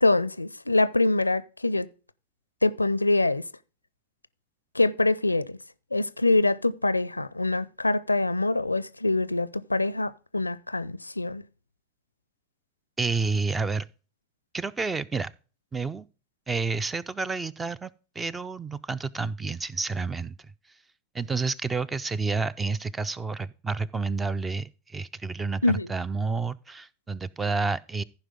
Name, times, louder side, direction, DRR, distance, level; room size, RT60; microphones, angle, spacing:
voice 1, 0.0-1.9 2.6-3.4 4.7-5.6 5.9-11.4 25.6-25.9, left 2 dB, 85° left, 0.4 m, -24 dB
voice 2, 13.0-13.9 14.5-15.3 15.7-16.0 16.5-17.9 18.2-20.5 21.1-28.0, right 4 dB, 15° right, 0.4 m, -29 dB
15.0 x 5.1 x 3.6 m
figure-of-eight pair, 90°, 0 cm